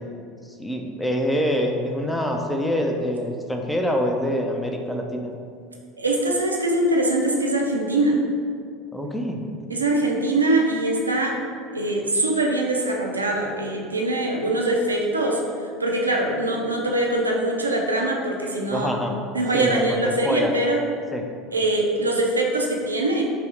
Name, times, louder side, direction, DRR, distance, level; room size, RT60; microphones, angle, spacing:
voice 1, 0.4-5.4 8.9-9.5 18.7-19.1 19.5-20.6 21.1-21.3, equal, 5° left, 2 dB, 0.4 m, -25 dB
voice 2, 6.0-8.2 9.7-11.4 11.7-18.9 19.3-20.8 21.5-23.2, right 2 dB, 80° right, 0 dB, 0.4 m, -23 dB
5.4 x 2.0 x 3.2 m, 2.3 s
figure-of-eight pair, 70°, 0 cm